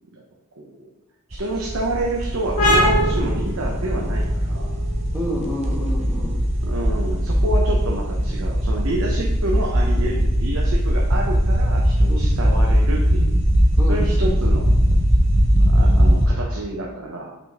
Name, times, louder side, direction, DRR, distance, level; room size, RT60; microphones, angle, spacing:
voice 1, 0.6-0.9 1.3-4.7 6.6-13.3 13.9-14.7 15.7-17.3, right 2 dB, 70° right, -2 dB, 0.8 m, -28 dB
sound 1, 1.3-16.3, equal, 30° right, 0.7 m, -19 dB
sound 2, 2.6-9.9, equal, 90° left, 1.8 m, -26 dB
voice 2, 5.1-6.4 11.1-11.3 12.1-12.4 13.7-14.3 15.9-16.2, left 1 dB, 10° right, -4 dB, 1.3 m, -30 dB
5.8 x 5.1 x 3.6 m, 1.0 s
head